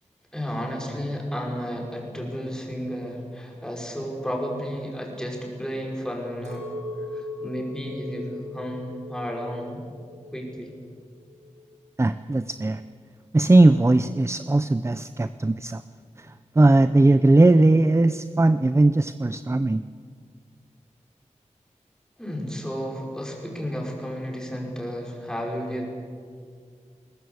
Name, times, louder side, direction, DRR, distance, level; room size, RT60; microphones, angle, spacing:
voice 1, 0.3-6.7 7.1-9.8 10.3-10.7 22.2-25.9, equal, 5° left, -1 dB, 5.2 m, -32 dB
Chink clink, 6.4-10.8 11.1-11.9, left 2 dB, 70° right, 4.0 m, -39 dB
voice 2, 12.0-12.8 13.3-15.8 16.2-19.8, right 2 dB, 20° right, 12 dB, 0.5 m, -19 dB
21.0 x 20.0 x 8.0 m, 2.1 s
wide cardioid pair, 85°, 13 cm